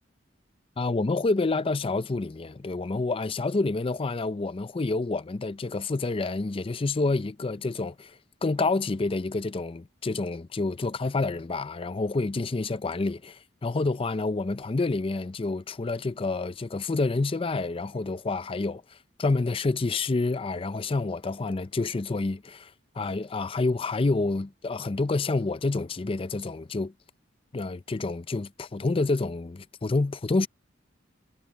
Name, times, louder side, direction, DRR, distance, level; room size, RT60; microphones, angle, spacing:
voice 1, 0.8-26.9 27.5-30.5, left 3 dB, 30° left, 0.5 m, -28 dB
head